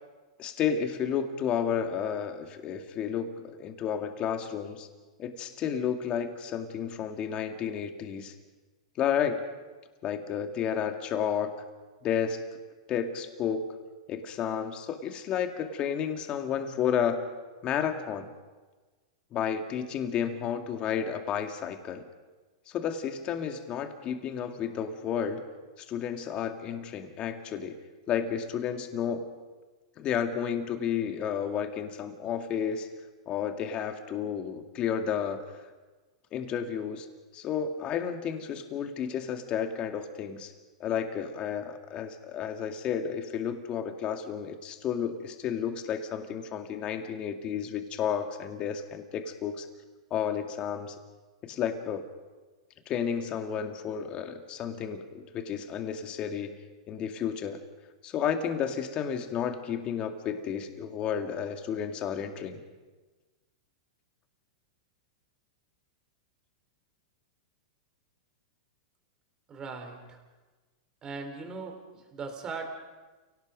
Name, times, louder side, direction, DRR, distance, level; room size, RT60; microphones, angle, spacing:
voice 1, 0.4-4.9 5.2-8.3 9.0-9.4 10.0-11.5 12.0-12.4 12.9-13.6 14.1-17.3 17.6-18.3 19.3-22.0 22.7-25.4 25.8-27.8 28.1-29.3 30.0-32.9 33.3-35.4 36.3-37.1 37.3-40.5 40.8-49.7 50.1-51.0 51.4-52.0 52.9-56.6 56.9-57.6 58.0-62.6, left 8 dB, 35° left, 6 dB, 2.2 m, -31 dB
voice 2, 69.5-70.2 71.0-72.7, right 4 dB, 25° right, 5 dB, 4.2 m, -39 dB
30.0 x 17.5 x 5.3 m, 1.3 s
hypercardioid pair, 135°, 3 cm